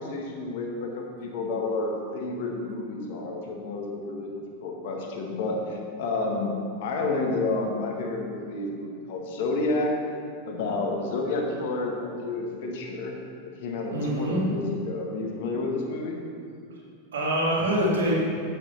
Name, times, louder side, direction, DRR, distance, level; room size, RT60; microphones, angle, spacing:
voice 1, 0.0-10.0 10.4-13.2 13.6-16.2, left 2 dB, 50° left, 0 dB, 1.7 m, -30 dB
voice 2, 13.9-14.6 17.1-18.1, right 1 dB, 65° right, -4 dB, 2.3 m, -25 dB
8.8 x 6.9 x 5.7 m, 2.5 s
figure-of-eight pair, 90°, 0 cm